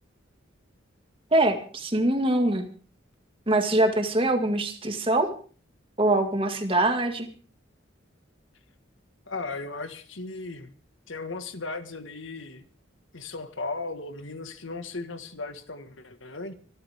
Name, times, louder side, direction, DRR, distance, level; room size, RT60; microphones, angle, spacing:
voice 1, 1.3-2.7 3.5-5.3 6.0-7.3, right 1 dB, 25° right, 5 dB, 2.1 m, -23 dB
voice 2, 9.3-10.7 11.1-12.6 13.1-16.5, left 3 dB, 75° left, 9 dB, 1.8 m, -36 dB
25.5 x 13.0 x 3.6 m, 0.42 s
head